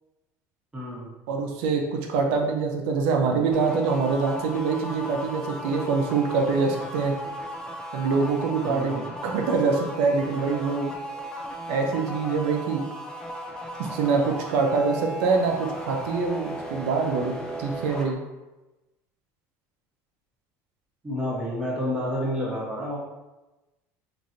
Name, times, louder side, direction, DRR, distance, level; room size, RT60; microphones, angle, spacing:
voice 1, 0.7-1.1 8.6-9.1 21.0-23.0, left 1 dB, 15° right, -6 dB, 1.1 m, -29 dB
voice 2, 1.3-7.1 7.9-10.9 11.7-12.8 13.8-17.3 17.6-18.2, right 4 dB, 80° right, 2 dB, 0.6 m, -25 dB
sound 1, 3.5-18.1, equal, 10° left, 0.4 m, -36 dB
3.1 x 2.6 x 2.6 m, 1.0 s
cardioid pair, 125°, 7 cm